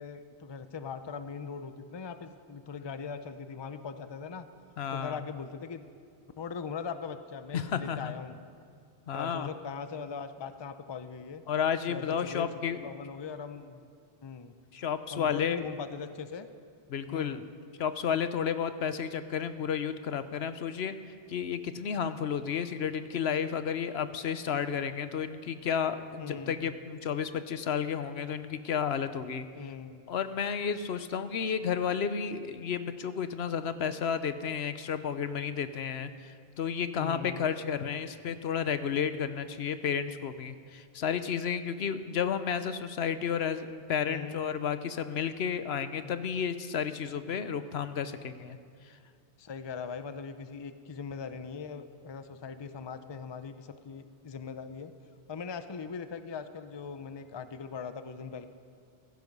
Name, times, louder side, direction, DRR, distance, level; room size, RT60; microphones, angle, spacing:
voice 1, 0.0-4.5 4.9-5.9 6.4-8.4 9.1-11.4 11.9-13.8 14.2-14.6 15.1-16.5 17.1-17.4 26.2-26.7 29.5-30.0 36.9-37.5 44.0-44.4 46.0-46.2 49.4-54.9 55.3-58.5, left 6 dB, 30° left, 10 dB, 0.6 m, -40 dB
voice 2, 4.8-5.2 7.5-8.1 9.1-9.5 11.5-12.8 14.7-15.7 16.9-17.4 17.8-20.9 21.3-29.5 30.1-48.6 48.8-49.0, left 7 dB, 75° left, 11 dB, 1.0 m, -32 dB
15.5 x 15.5 x 5.4 m, 2.2 s
omnidirectional pair, 1.1 m